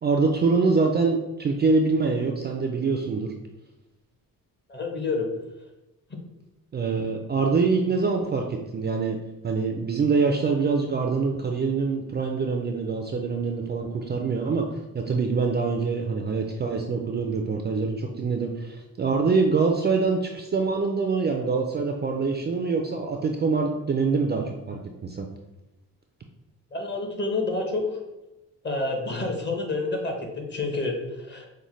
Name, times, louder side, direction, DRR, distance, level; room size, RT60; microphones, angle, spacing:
voice 1, 0.0-3.3 6.7-9.2 9.4-14.6 14.9-25.3, right 4 dB, 30° right, 3 dB, 0.4 m, -25 dB
voice 2, 4.7-5.3 26.7-27.8 28.6-31.5, left 3 dB, 30° left, 1 dB, 0.9 m, -28 dB
5.4 x 2.1 x 3.1 m, 1.0 s
cardioid pair, 110°, 35 cm